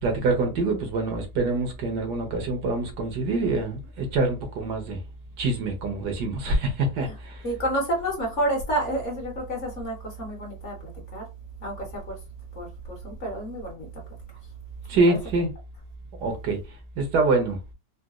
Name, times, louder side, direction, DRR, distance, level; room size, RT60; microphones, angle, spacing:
voice 1, 0.0-5.0 5.4-7.4 14.9-15.5 16.2-16.6 17.0-17.6, right 3 dB, 75° right, 1.4 m, -25 dB
voice 2, 7.4-11.2 11.6-12.2 12.5-13.9 15.1-15.2, right 1 dB, 45° left, 1.3 m, -30 dB
3.9 x 2.2 x 2.4 m
omnidirectional pair, 1.9 m